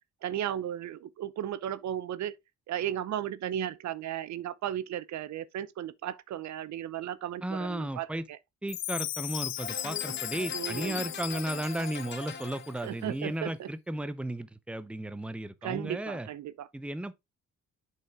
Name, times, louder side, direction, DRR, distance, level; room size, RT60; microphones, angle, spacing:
voice 1, 0.2-2.4 2.7-8.4 10.5-11.0 12.8-13.7 15.6-16.7, right 11 dB, 65° right, 0.7 m, -35 dB
voice 2, 7.4-8.2 8.6-16.3 16.7-17.2, right 1 dB, 5° right, 0.7 m, -35 dB
Chime, 8.7-12.7, left 12 dB, 60° left, 0.7 m, -37 dB
sound 1, 9.6-13.0, left 5 dB, 35° left, 1.5 m, -42 dB
7.4 x 5.6 x 3.6 m
cardioid pair, 90°, 30 cm